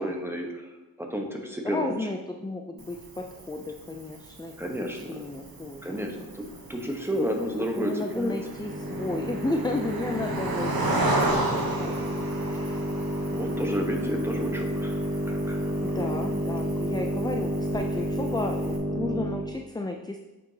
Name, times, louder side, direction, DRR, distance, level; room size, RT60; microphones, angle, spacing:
voice 1, 0.0-2.1 4.6-5.2 5.8-6.4 6.7-8.4 13.2-15.0 15.3-16.7, equal, 5° right, 2 dB, 1.0 m, -32 dB
voice 2, 1.6-6.1 7.5-11.9 12.4-12.9 15.8-20.2, left 2 dB, 10° left, 4 dB, 0.4 m, -34 dB
Cricket, 2.8-18.8, right 2 dB, 70° right, 1.0 m, -34 dB
sound 1, 8.5-19.6, equal, 25° right, 1.0 m, -30 dB
8.0 x 5.4 x 2.8 m, 1.1 s
wide cardioid pair, 60°, 37 cm